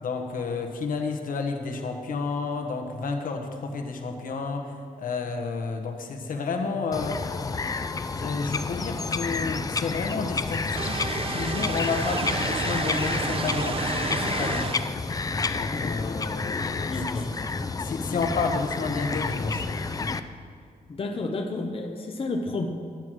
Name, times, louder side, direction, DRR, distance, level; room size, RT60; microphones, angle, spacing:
voice 1, 0.0-7.2 8.2-11.0 11.3-14.7 15.5-17.1 17.8-19.6, left 4 dB, 75° left, 4 dB, 1.3 m, -31 dB
Bird vocalization bird call bird song, 6.9-20.2, left 4 dB, 25° left, 0.4 m, -30 dB
sound 1, 10.7-14.9, right 5 dB, 40° right, 0.7 m, -31 dB
voice 2, 16.8-17.3 20.9-22.7, left 2 dB, 40° left, 4 dB, 0.8 m, -30 dB
12.0 x 9.2 x 6.2 m, 2.1 s
wide cardioid pair, 140°, 14 cm